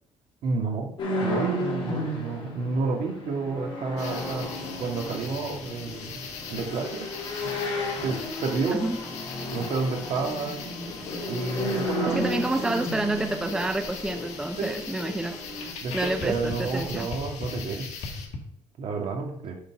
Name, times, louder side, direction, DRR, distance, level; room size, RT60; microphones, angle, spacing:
voice 1, 0.4-0.9 1.2-4.5 4.8-7.1 7.4-7.6 8.0-8.9 9.5-10.6 11.3-12.2 12.6-13.4 14.6-14.7 15.8-18.2 18.8-19.6, right 4 dB, 65° right, 2 dB, 1.8 m, -30 dB
sound 1, 1.0-15.7, left 1 dB, 45° left, 2.8 m, -33 dB
sound 2, 4.0-18.3, left 5 dB, 80° left, 1.4 m, -41 dB
sound 3, 10.9-18.4, left 3 dB, 65° left, 1.7 m, -40 dB
voice 2, 12.1-15.4 15.9-17.1, right 2 dB, 5° right, 6 dB, 0.4 m, -29 dB
8.5 x 4.1 x 5.9 m, 0.70 s
cardioid pair, 150°, 12 cm